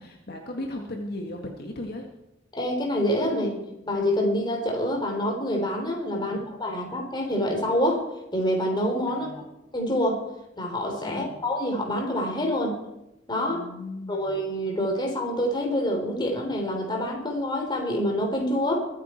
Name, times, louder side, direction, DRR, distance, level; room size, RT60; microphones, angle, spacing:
voice 1, 0.0-2.1 6.2-6.5 9.1-9.4 11.0-11.4 13.5-14.4, left 1 dB, 55° left, 2 dB, 1.8 m, -37 dB
voice 2, 2.5-8.0 8.3-9.3 9.7-10.2 10.6-12.8 13.3-13.6 14.1-18.8, equal, 25° left, 1 dB, 3.8 m, -26 dB
23.0 x 9.4 x 4.5 m, 0.91 s
head